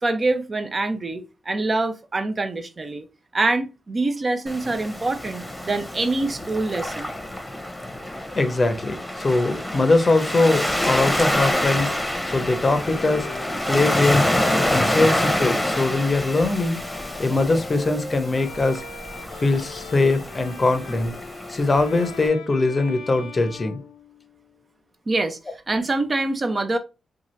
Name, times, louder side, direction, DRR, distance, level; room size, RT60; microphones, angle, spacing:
voice 1, 0.0-3.0 3.3-7.1 25.1-25.4 25.7-26.8, right 2 dB, 40° right, 0.6 m, -25 dB
Waves surf, 4.5-22.3, left 1 dB, 5° left, 0.9 m, -27 dB
voice 2, 8.3-11.9 12.3-13.3 13.7-14.3 14.7-16.8 17.2-18.8 19.4-21.1 21.5-23.8, left 3 dB, 40° left, 0.6 m, -21 dB
Bowed string instrument, 10.6-24.5, left 5 dB, 80° left, 0.4 m, -39 dB
2.8 x 2.3 x 3.1 m
supercardioid pair, 40°, 0 cm